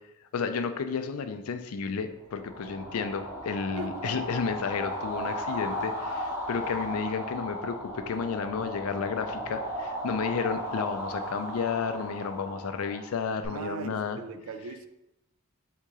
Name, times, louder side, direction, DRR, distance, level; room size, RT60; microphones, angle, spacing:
voice 1, 0.3-14.2, left 5 dB, 85° left, 9 dB, 0.4 m, -32 dB
sound 1, 2.3-13.5, equal, 10° right, 0.8 m, -36 dB
voice 2, 3.8-4.1 13.4-14.9, right 4 dB, 65° right, 9 dB, 0.3 m, -39 dB
3.6 x 2.8 x 4.7 m, 0.90 s
head